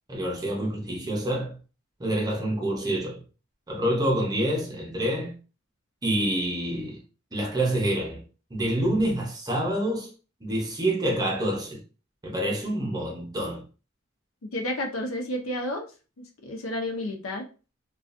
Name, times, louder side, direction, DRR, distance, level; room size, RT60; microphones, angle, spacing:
voice 1, 0.1-1.6 2.0-3.2 3.7-5.3 6.0-7.0 7.3-8.2 8.5-10.1 10.4-11.8 12.2-13.6, right 1 dB, 20° right, 0.7 m, -27 dB
voice 2, 14.5-15.8 16.4-17.5, left 1 dB, 75° left, 0.6 m, -30 dB
2.3 x 2.3 x 2.5 m
head